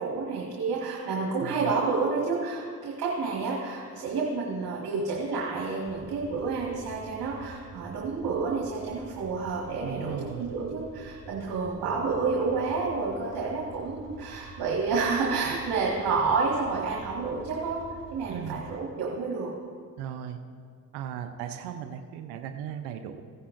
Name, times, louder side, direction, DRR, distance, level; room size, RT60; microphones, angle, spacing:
voice 1, 0.0-17.8 18.1-19.5, right 4 dB, 70° right, -3 dB, 1.7 m, -29 dB
voice 2, 1.4-1.7 9.8-10.5 18.3-18.7 20.0-20.4 20.9-23.2, right 9 dB, 90° right, 7 dB, 0.7 m, -37 dB
sound 1, 5.9-18.8, right 3 dB, 40° right, 2.5 m, -48 dB
15.5 x 9.7 x 2.6 m, 2.1 s
supercardioid pair, 60°, 39 cm